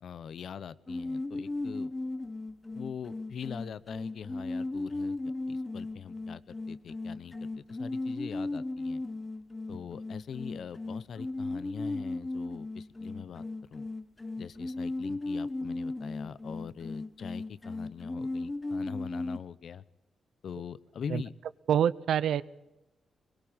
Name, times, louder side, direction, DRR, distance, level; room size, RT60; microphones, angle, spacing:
voice 1, 0.0-1.9 2.7-5.2 5.5-9.0 9.7-13.4 13.7-13.9 14.4-19.8 20.4-21.3, left 7 dB, 60° left, 17 dB, 0.9 m, -42 dB
sound 1, 0.9-19.4, left 2 dB, 15° left, 1.1 m, -36 dB
voice 2, 21.7-22.4, right 9 dB, 80° right, 18 dB, 0.8 m, -26 dB
23.0 x 21.5 x 8.8 m, 0.99 s
wide cardioid pair, 150°, 0 cm